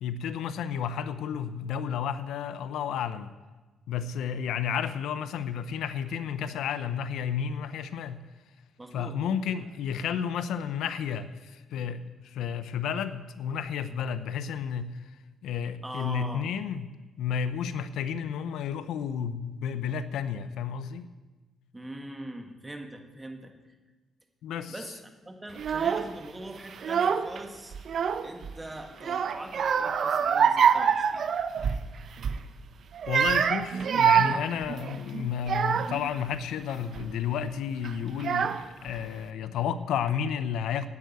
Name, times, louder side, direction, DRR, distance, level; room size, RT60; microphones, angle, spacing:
voice 1, 0.0-3.3 3.9-8.2 8.9-14.9 15.4-21.1 24.4-24.8 33.1-40.9, left 7 dB, 80° left, 13 dB, 0.6 m, -32 dB
voice 2, 8.8-9.2 15.8-16.6 21.7-23.5 24.7-27.7 28.2-31.3, right 1 dB, 15° right, 4 dB, 1.7 m, -42 dB
Child speech kid speaking / Crying sobbing, 25.6-26.1 26.7-27.4 27.7-28.5 29.0-31.9 32.2-32.4 32.9-36.1 36.7-37.1 37.8-37.9 38.2-38.9, right 7 dB, 55° right, 0.7 m, -25 dB
9.3 x 8.4 x 9.2 m, 1.2 s
cardioid pair, 90°, 0 cm